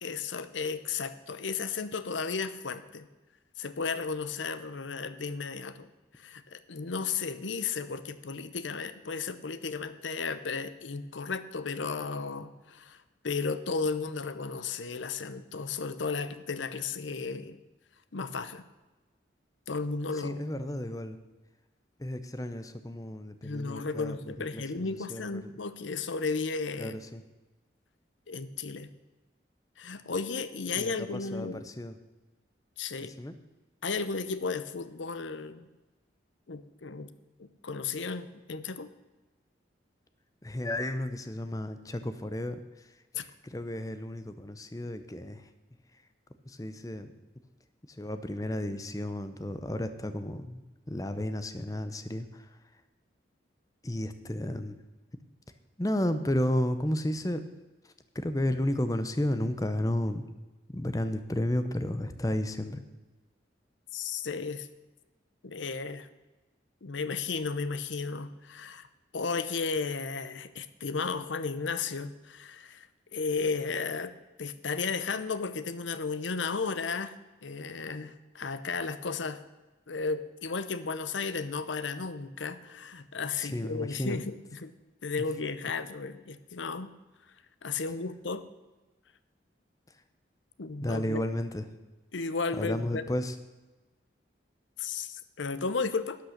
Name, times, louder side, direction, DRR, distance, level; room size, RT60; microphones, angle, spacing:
voice 1, 0.0-3.1 3.6-5.9 6.2-17.6 18.1-18.6 19.7-20.4 23.4-27.0 28.3-28.9 29.8-31.6 32.8-33.1 33.8-35.7 36.5-37.1 37.4-38.9 43.1-43.2 63.9-64.7 65.4-66.1 66.8-68.9 69.1-72.9 73.1-74.1 74.4-77.1 77.4-79.4 79.9-84.7 85.0-86.9 87.6-88.4 90.6-91.2 92.1-93.0 94.8-96.2, left 4 dB, 85° left, 13 dB, 0.8 m, -34 dB
voice 2, 20.2-21.2 22.0-25.4 26.8-27.2 30.8-32.0 33.0-33.3 40.4-42.6 43.2-45.4 46.5-47.1 48.0-52.5 53.8-54.8 55.8-57.4 58.1-60.2 60.7-62.8 83.4-84.2 90.8-91.6 92.6-93.3, left 1 dB, 20° left, 10 dB, 0.7 m, -32 dB
12.5 x 8.6 x 6.6 m, 1.2 s
head